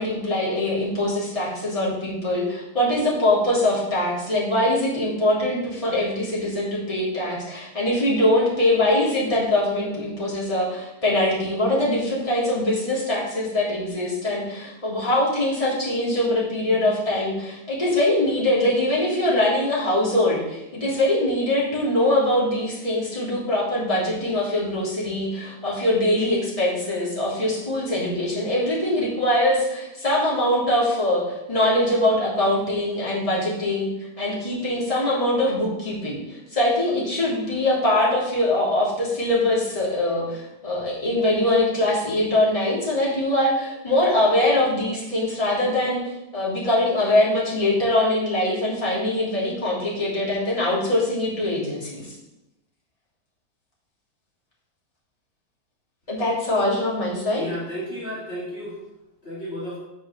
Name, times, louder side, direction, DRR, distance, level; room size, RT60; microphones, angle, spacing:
voice 1, 0.0-33.9 34.2-52.1 56.1-57.4, left 1 dB, 20° left, -7 dB, 3.3 m, -23 dB
voice 2, 57.3-58.8 59.2-59.8, equal, 35° left, -8 dB, 3.0 m, -32 dB
8.3 x 6.0 x 6.9 m, 0.92 s
omnidirectional pair, 1.8 m